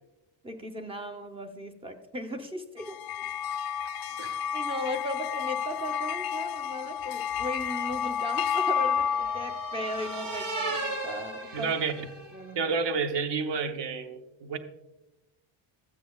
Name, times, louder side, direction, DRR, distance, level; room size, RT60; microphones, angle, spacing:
voice 1, 0.4-3.0 4.5-11.7 12.3-12.6, equal, 10° right, 6 dB, 0.6 m, -37 dB
sound 1, 2.8-11.4, left 8 dB, 50° left, 0.4 m, -31 dB
sound 2, 7.1-12.5, right 3 dB, 80° right, 2.0 m, -38 dB
voice 2, 11.5-12.1 12.5-14.6, right 5 dB, 55° right, 8 dB, 0.9 m, -30 dB
14.0 x 8.9 x 2.3 m, 0.99 s
cardioid pair, 160°, 50 cm